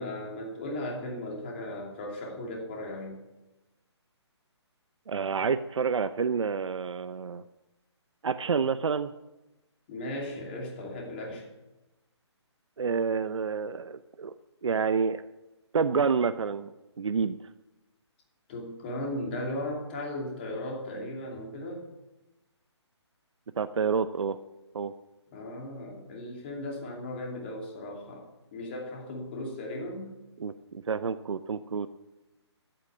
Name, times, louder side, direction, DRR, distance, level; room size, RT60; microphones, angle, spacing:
voice 1, 0.0-3.2 9.9-11.4 18.5-21.9 25.3-30.1, left 1 dB, 20° left, 0 dB, 2.7 m, -36 dB
voice 2, 5.1-7.4 8.2-9.1 12.8-14.3 14.6-15.2 15.7-17.4 23.6-24.4 24.7-24.9 30.4-31.9, right 5 dB, 80° right, 11 dB, 0.7 m, -28 dB
13.0 x 9.0 x 8.7 m, 1.0 s
hypercardioid pair, 175°, 15 cm